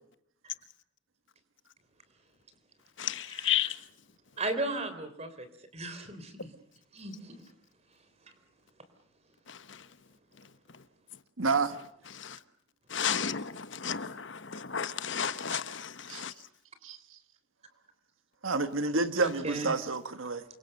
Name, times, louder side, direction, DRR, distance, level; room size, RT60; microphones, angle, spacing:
voice 1, 3.0-3.9 9.5-10.1 10.3-10.9 11.1-11.2 12.1-12.4 12.9-16.5, left 8 dB, 60° left, 1.1 m, -34 dB
voice 2, 4.4-5.5 5.7-6.3 6.9-7.3 19.2-19.7, right 2 dB, 30° right, 3.5 m, -35 dB
voice 3, 11.4-11.8 16.1-16.2 16.8-17.0 18.4-20.4, right 3 dB, 75° right, 1.5 m, -29 dB
28.5 x 24.0 x 6.6 m
head